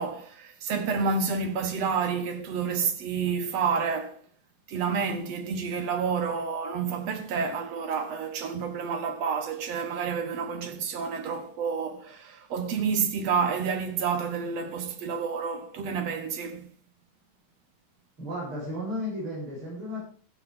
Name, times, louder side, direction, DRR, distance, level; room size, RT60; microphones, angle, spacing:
voice 1, 0.0-4.2 4.7-16.7, right 5 dB, 60° right, 1.9 m, -29 dB
voice 2, 18.2-20.1, left 1 dB, 30° right, 8.7 m, -34 dB
16.0 x 15.5 x 3.6 m
omnidirectional pair, 4.5 m